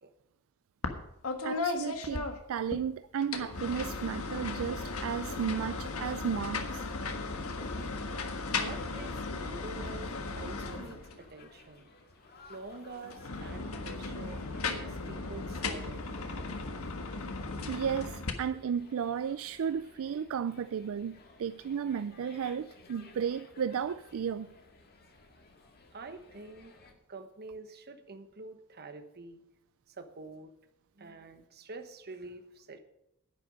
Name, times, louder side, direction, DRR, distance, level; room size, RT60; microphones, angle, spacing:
sound 1, 0.8-2.8 3.2-11.3 13.0-18.3, left 3 dB, 70° left, 1.5 m, -36 dB
voice 1, 1.4-6.9 17.7-24.5, right 7 dB, 65° right, 0.4 m, -34 dB
sound 2, 7.4-26.9, left 3 dB, 45° left, 1.8 m, -57 dB
voice 2, 8.5-11.9 12.5-16.3 25.9-26.7 27.1-29.4 29.9-30.5 31.0-32.8, right 3 dB, 45° right, 1.1 m, -47 dB
10.5 x 10.0 x 5.2 m
head